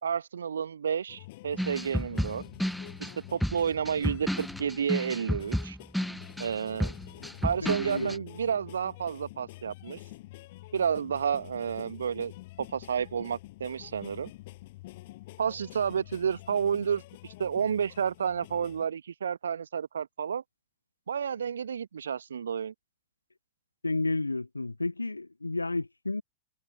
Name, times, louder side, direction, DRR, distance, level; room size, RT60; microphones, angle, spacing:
voice 1, 0.0-2.4 3.0-5.8 6.4-6.9 7.4-10.0 10.7-12.3 12.6-14.3 15.4-17.0 17.4-20.4 21.1-22.7, right 7 dB, 70° right, 1.0 m, -30 dB
sound 1, 1.1-18.9, left 18 dB, 50° left, 6.8 m, -48 dB
sound 2, 1.6-8.2, equal, ahead, 0.4 m, -32 dB
voice 2, 7.6-8.2 23.8-26.2, left 2 dB, 80° left, 0.5 m, -31 dB
figure-of-eight pair, 90°, 0 cm